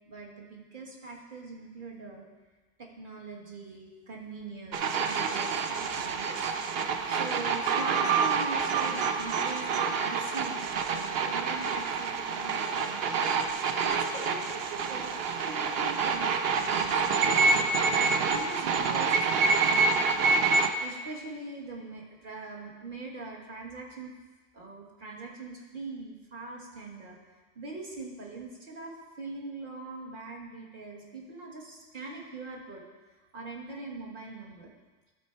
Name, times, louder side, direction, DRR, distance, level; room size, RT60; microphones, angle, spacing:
voice 1, 0.1-2.3 2.8-6.8 7.1-13.2 13.7-24.1 24.5-27.2 27.5-34.7, right 3 dB, 45° right, -1 dB, 1.4 m, -42 dB
sound 1, 4.7-20.7, right 4 dB, 60° right, 0.7 m, -27 dB
12.5 x 4.4 x 4.4 m, 1.3 s
omnidirectional pair, 1.3 m